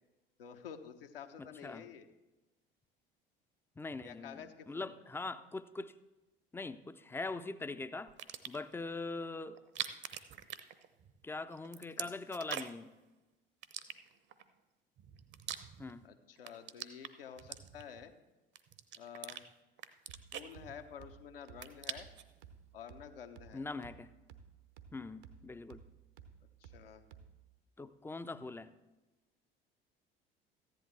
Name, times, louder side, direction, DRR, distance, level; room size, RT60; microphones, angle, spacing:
voice 1, 0.4-2.1 4.0-4.9 12.0-12.1 16.0-18.1 19.0-19.4 20.3-22.1 22.7-23.6 26.6-27.0, left 8 dB, 70° left, 7 dB, 0.9 m, -50 dB
voice 2, 1.4-1.9 3.8-6.0 6.5-8.1 8.5-9.6 11.2-12.9 15.8-16.0 23.5-24.1 24.9-25.8 27.8-28.7, left 3 dB, 10° left, 12 dB, 0.5 m, -42 dB
sound 1, 8.1-8.7 9.6-11.2 11.5-12.9 13.6-14.4 15.0-16.1 16.4-18.1 18.6-19.4 19.8-21.1 21.4-22.3, right 10 dB, 40° right, 0.8 m, -44 dB
sound 2, 20.1-27.6, right 8 dB, 65° right, 0.9 m, -58 dB
14.5 x 10.5 x 3.2 m, 1.1 s
figure-of-eight pair, 65°, 29 cm